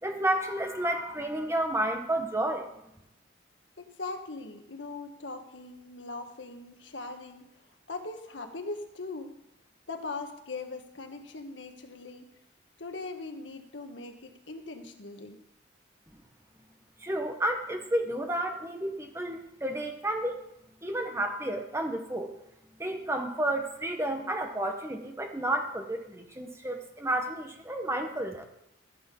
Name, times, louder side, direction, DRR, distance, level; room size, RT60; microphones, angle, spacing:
voice 1, 0.0-2.7 17.0-20.4 20.8-22.3 22.8-28.4, right 1 dB, 15° right, 4 dB, 1.4 m, -31 dB
voice 2, 3.8-9.4 9.9-12.3 12.8-15.4, left 3 dB, 80° left, 5 dB, 1.5 m, -40 dB
15.0 x 8.6 x 5.4 m, 0.81 s
head